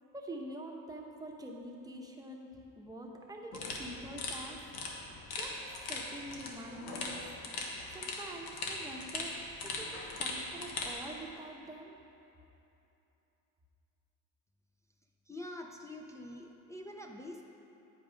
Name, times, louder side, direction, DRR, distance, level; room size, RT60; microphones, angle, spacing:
voice 1, 0.1-4.6 5.4-5.5 5.9-7.2 7.9-9.3 9.6-9.9 10.2-11.9, right 1 dB, 10° right, 0 dB, 0.8 m, -45 dB
sound 1, 3.5-10.9, left 3 dB, 75° left, 1.3 m, -40 dB
voice 2, 15.3-17.4, left 1 dB, 10° left, 0 dB, 0.4 m, -45 dB
9.1 x 5.4 x 5.1 m, 2.9 s
cardioid pair, 120°, 36 cm